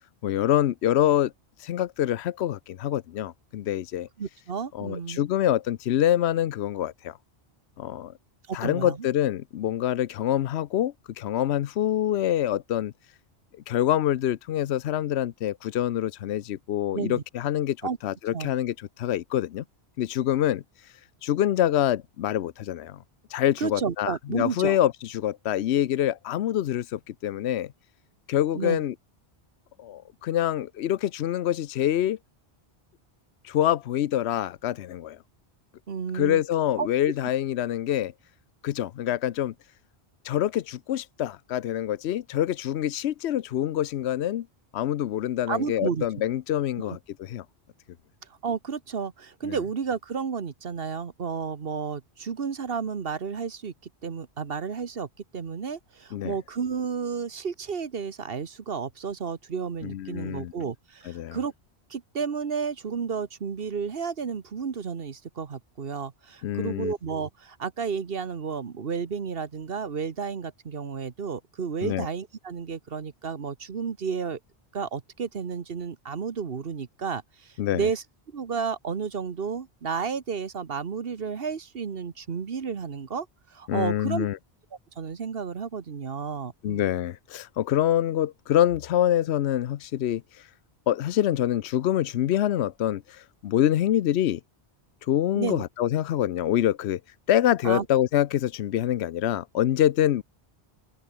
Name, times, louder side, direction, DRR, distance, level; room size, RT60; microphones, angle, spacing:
voice 1, 0.2-1.3 1.6-4.1 4.7-7.2 7.8-8.1 8.5-12.9 13.7-19.6 20.0-20.9 21.2-23.0 23.3-27.7 28.3-28.9 29.8-32.2 33.4-35.2 36.1-38.1 38.6-39.5 40.2-44.5 44.7-47.4 49.4-49.6 56.1-56.3 59.8-60.5 61.1-61.4 66.4-66.9 71.8-72.1 77.6-77.9 83.7-84.4 86.6-90.5 90.9-94.4 95.0-97.0 97.3-100.2, left 11 dB, 85° left, 0.9 m, -26 dB
voice 2, 4.2-5.2 8.5-9.0 16.9-17.2 17.8-18.0 18.3-18.5 23.6-24.8 28.5-28.8 35.9-36.4 36.8-36.9 45.5-46.1 46.8-47.0 48.4-53.7 54.0-55.1 55.3-61.5 61.9-74.4 74.7-78.0 78.3-84.3 85.0-86.8 95.3-95.6 97.6-97.9, right 6 dB, 60° right, 1.4 m, -32 dB
open air
omnidirectional pair, 1.1 m